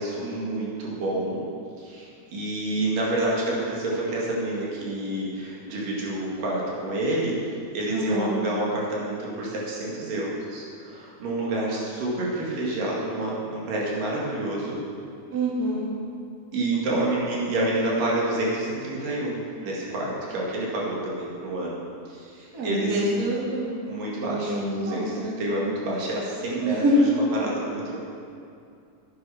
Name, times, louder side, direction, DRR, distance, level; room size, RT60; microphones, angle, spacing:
voice 1, 0.0-1.4 1.8-7.4 7.7-14.8 16.5-21.8 22.1-23.0 23.9-28.0, right 1 dB, 80° right, -5 dB, 3.8 m, -28 dB
voice 2, 7.9-8.4 15.3-15.9 22.5-23.8 24.2-25.3 26.6-27.1, equal, 30° right, -5 dB, 2.4 m, -25 dB
10.5 x 9.5 x 5.8 m, 2.5 s
omnidirectional pair, 3.9 m